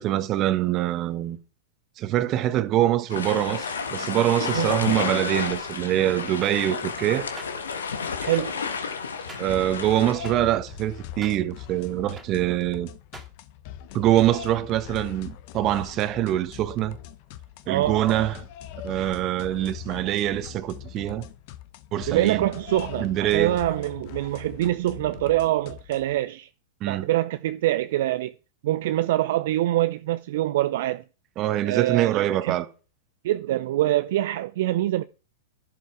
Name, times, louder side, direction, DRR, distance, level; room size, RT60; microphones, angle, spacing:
voice 1, 0.0-1.4 2.0-7.3 9.4-12.9 13.9-17.0 17.7-18.4 18.8-21.2 21.9-22.5 23.0-23.6 26.8-27.1 31.4-32.7, right 13 dB, 35° right, 1.4 m, -24 dB
sound 1, 3.1-10.1, left 5 dB, 80° left, 1.7 m, -31 dB
sound 2, 6.4-6.5 7.4-7.5 8.3-8.4 9.3-9.4 10.2-10.3 11.2-11.3 12.2-12.3 13.1-13.3, right 3 dB, 15° right, 2.6 m, -41 dB
voice 2, 8.2-8.6 17.7-18.0 22.1-26.5 26.9-28.3 28.6-31.0 31.6-32.5 33.2-35.0, right 15 dB, 60° right, 0.5 m, -25 dB
sound 3, 9.5-26.2, left 11 dB, 50° left, 1.1 m, -41 dB
11.5 x 11.0 x 4.7 m
hypercardioid pair, 105°, 0 cm